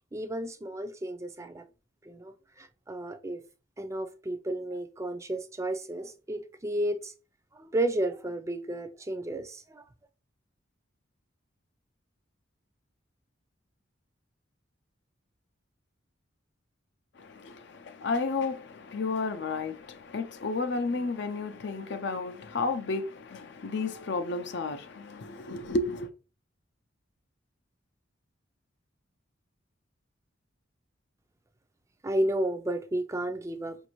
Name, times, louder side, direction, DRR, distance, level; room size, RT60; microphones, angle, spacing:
voice 1, 0.1-1.6 2.1-3.4 3.8-7.1 7.5-9.8 32.0-33.8, right 1 dB, 15° right, 0.4 m, -32 dB
voice 2, 17.2-26.1, left 3 dB, 60° left, 0.5 m, -32 dB
5.1 x 2.6 x 3.0 m
head